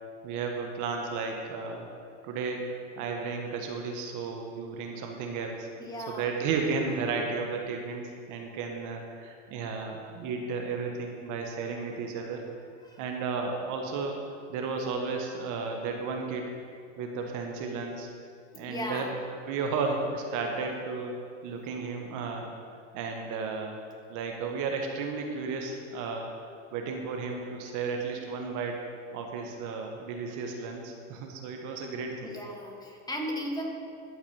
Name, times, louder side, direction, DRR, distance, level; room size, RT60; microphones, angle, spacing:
voice 1, 0.2-1.9 2.2-2.6 3.0-5.7 6.1-12.4 13.0-16.4 17.0-18.1 18.6-19.2 19.5-21.1 21.4-22.5 22.9-23.8 24.1-26.3 26.7-28.8 29.1-32.4, right 4 dB, 55° right, 2 dB, 1.5 m, -33 dB
voice 2, 5.8-6.4 12.8-13.0 18.5-19.2 32.2-33.6, equal, 10° left, -1 dB, 1.8 m, -36 dB
12.5 x 4.8 x 7.0 m, 2.3 s
hypercardioid pair, 105°, 37 cm